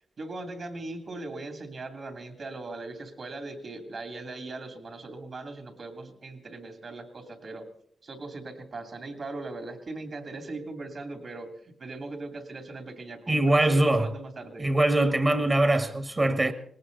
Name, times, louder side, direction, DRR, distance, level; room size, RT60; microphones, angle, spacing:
voice 1, 0.2-7.7 8.0-14.7, right 2 dB, 55° right, 2.8 m, -39 dB
voice 2, 13.3-14.1 14.6-16.5, right 1 dB, 30° right, 1.5 m, -22 dB
19.0 x 18.0 x 4.0 m
cardioid pair, 60°, 0 cm